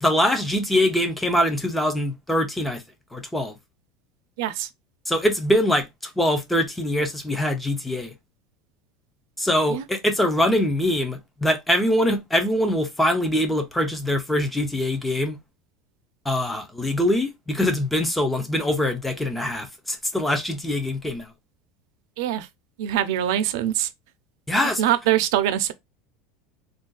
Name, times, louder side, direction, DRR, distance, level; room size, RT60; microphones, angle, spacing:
voice 1, 0.0-2.8 3.1-3.6 5.1-8.1 9.4-15.4 16.3-21.3 24.5-24.8, left 1 dB, 5° left, 0.4 m, -23 dB
voice 2, 4.4-4.7 9.7-9.8 22.2-22.5 22.8-23.9 24.8-25.7, right 12 dB, 70° right, 0.4 m, -23 dB
2.4 x 2.2 x 3.7 m
cardioid pair, 175°, 2 cm